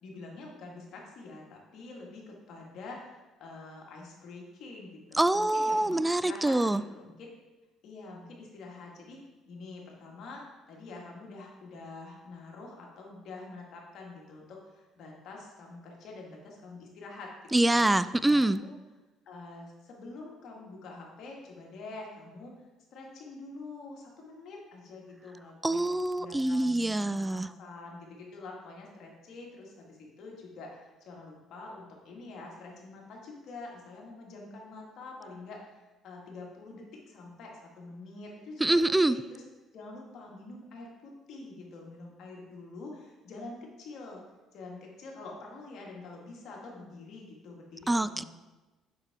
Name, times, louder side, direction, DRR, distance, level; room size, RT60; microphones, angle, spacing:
voice 1, 0.0-7.3 7.8-9.2 9.5-17.3 17.7-17.8 18.2-18.7 19.3-22.5 22.9-25.8 26.2-39.4 39.7-44.2 44.5-48.2, left 3 dB, 65° left, -1 dB, 1.8 m, -46 dB
voice 2, 5.1-6.8 17.5-18.6 25.6-27.5 38.6-39.2 47.9-48.2, right 1 dB, 10° right, 15 dB, 0.3 m, -25 dB
6.5 x 5.7 x 3.7 m, 1.1 s
supercardioid pair, 75°, 0 cm